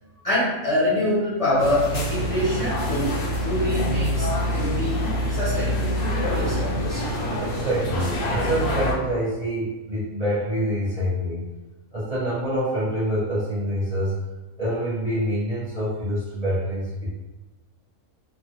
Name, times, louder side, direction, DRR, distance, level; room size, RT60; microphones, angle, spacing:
voice 1, 0.2-5.0 5.3-7.0, left 1 dB, 30° left, -11 dB, 0.8 m, -25 dB
sound 1, 1.6-8.9, equal, 70° left, 1.1 m, -26 dB
voice 2, 7.4-11.4 11.9-14.2 14.6-17.1, equal, 35° right, -10 dB, 0.8 m, -26 dB
3.0 x 2.1 x 2.8 m, 1.1 s
omnidirectional pair, 1.4 m